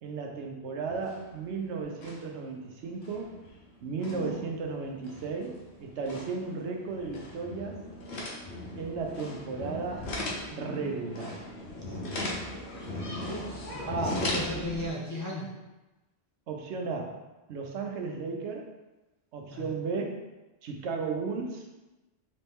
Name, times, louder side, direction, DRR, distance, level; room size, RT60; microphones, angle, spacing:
voice 1, 0.0-3.3 3.8-7.8 8.8-10.1 10.5-11.4 13.9-14.3 16.5-17.2 17.5-18.7 19.3-20.2 20.6-21.6, right 4 dB, 85° right, 2 dB, 1.0 m, -34 dB
sound 1, 0.8-1.6 1.8-2.4 2.8-14.9, left 1 dB, 75° left, 1.1 m, -38 dB
voice 2, 4.0-4.4 13.2-15.5 19.5-19.7, left 1 dB, 25° left, -4 dB, 0.5 m, -36 dB
4.2 x 3.4 x 3.5 m, 1.1 s
omnidirectional pair, 1.1 m